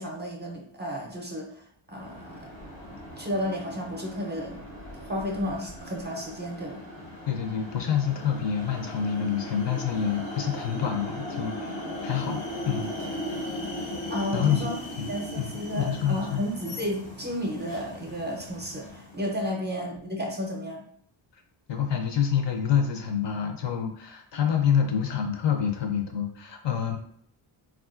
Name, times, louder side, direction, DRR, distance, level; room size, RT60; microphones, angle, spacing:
voice 1, 0.0-2.3 2.9-4.6 4.9-6.8 14.1-14.8 15.1-20.9, equal, 20° right, 0 dB, 0.5 m, -32 dB
sound 1, 1.9-19.4, left 1 dB, 90° left, 1.4 m, -38 dB
voice 2, 7.3-12.9 14.3-14.7 15.0-15.1 15.4-16.4 21.3-21.4 21.7-27.0, left 8 dB, 60° left, 4 dB, 0.6 m, -27 dB
3.6 x 2.4 x 2.4 m, 0.64 s
wide cardioid pair, 120°, 49 cm